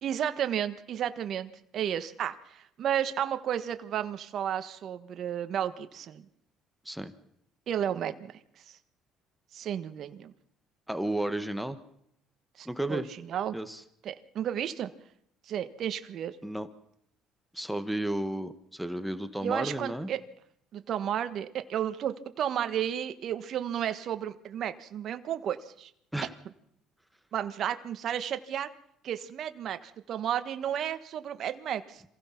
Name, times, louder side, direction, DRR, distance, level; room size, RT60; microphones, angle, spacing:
voice 1, 0.0-6.2 7.7-8.4 9.5-10.3 12.6-13.0 13.3-13.6 14.0-14.9 15.5-16.3 19.4-20.2 20.7-25.9 27.3-28.7 29.0-32.0, right 10 dB, 55° right, 10 dB, 1.4 m, -32 dB
voice 2, 10.9-11.8 12.6-13.1 13.5-13.8 16.4-16.7 17.5-20.1 26.1-26.3, right 1 dB, ahead, 9 dB, 1.5 m, -33 dB
27.0 x 16.0 x 6.0 m, 0.75 s
cardioid pair, 95°, 0 cm